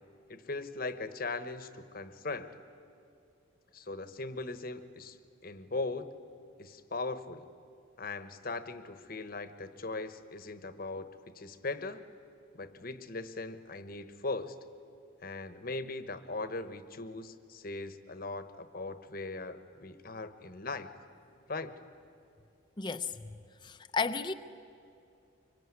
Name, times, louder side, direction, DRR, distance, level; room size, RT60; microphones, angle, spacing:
voice 1, 0.3-2.5 3.7-5.2 5.4-6.1 6.6-7.5 8.0-11.1 11.3-12.0 12.5-14.5 15.2-20.9 21.5-21.7, left 3 dB, 45° left, 11 dB, 1.1 m, -39 dB
voice 2, 22.8-23.4 23.6-24.3, left 4 dB, 20° left, 8 dB, 0.6 m, -33 dB
24.5 x 23.5 x 9.6 m, 2.6 s
head